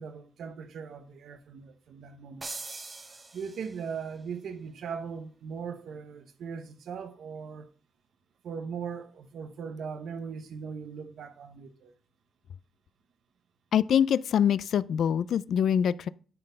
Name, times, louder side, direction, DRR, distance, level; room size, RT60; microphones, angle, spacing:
voice 1, 0.0-2.5 3.3-7.7 8.4-11.9, right 6 dB, 75° right, 0.8 m, -39 dB
sound 1, 2.4-4.0, right 3 dB, 25° right, 0.8 m, -42 dB
voice 2, 13.7-16.1, left 8 dB, 75° left, 0.3 m, -24 dB
11.0 x 4.2 x 5.4 m
wide cardioid pair, 170°, 0 cm